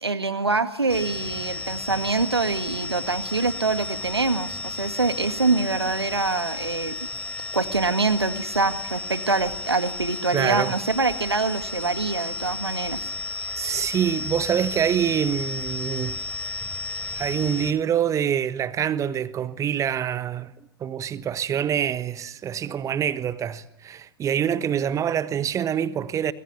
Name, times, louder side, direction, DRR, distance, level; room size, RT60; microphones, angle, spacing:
voice 1, 0.0-7.0 7.5-13.1, right 3 dB, 85° right, 1.9 m, -25 dB
sound 1, 0.9-17.7, left 2 dB, 10° left, 3.3 m, -33 dB
voice 2, 10.3-10.7 13.6-16.2 17.1-20.5 20.8-26.3, right 9 dB, 25° right, 1.2 m, -25 dB
24.5 x 23.0 x 9.4 m
figure-of-eight pair, 90°, 13 cm